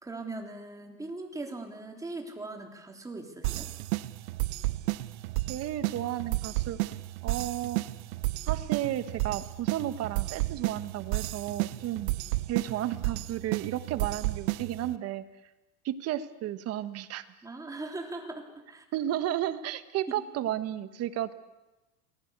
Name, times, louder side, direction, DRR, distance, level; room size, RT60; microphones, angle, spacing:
voice 1, 0.0-3.7 17.4-18.9, right 2 dB, 10° right, 2 dB, 3.5 m, -40 dB
sound 1, 3.4-14.9, right 19 dB, 60° right, 1.1 m, -32 dB
voice 2, 5.5-6.8 7.2-7.8 8.5-12.1 12.5-15.2 15.8-17.3 18.9-21.3, right 12 dB, 40° right, 12 dB, 1.5 m, -33 dB
28.0 x 20.0 x 8.3 m, 1.0 s
supercardioid pair, 140°, 39 cm